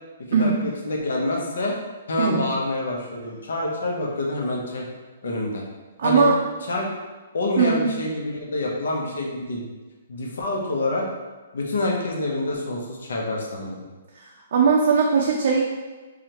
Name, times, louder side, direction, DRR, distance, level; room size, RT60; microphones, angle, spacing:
voice 1, 0.4-1.7 2.1-4.8 5.2-5.7 6.0-6.3 6.7-6.9 7.3-9.7 10.1-11.1 11.5-13.8, left 2 dB, 80° left, -1 dB, 0.9 m, -27 dB
voice 2, 6.0-6.3 7.6-7.9 14.5-15.6, right 5 dB, 50° right, -2 dB, 0.5 m, -19 dB
4.8 x 2.4 x 3.0 m, 1.3 s
hypercardioid pair, 175°, 0 cm